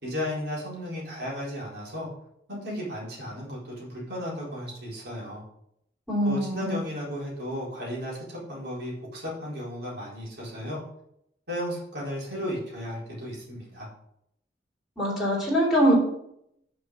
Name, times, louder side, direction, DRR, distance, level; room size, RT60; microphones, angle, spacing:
voice 1, 0.0-2.1 2.5-5.4 6.2-10.8 11.5-13.9, equal, 60° right, -5 dB, 4.2 m, -34 dB
voice 2, 6.1-6.8 15.0-15.9, equal, 5° right, -6 dB, 3.4 m, -23 dB
6.6 x 6.2 x 6.3 m, 0.76 s
head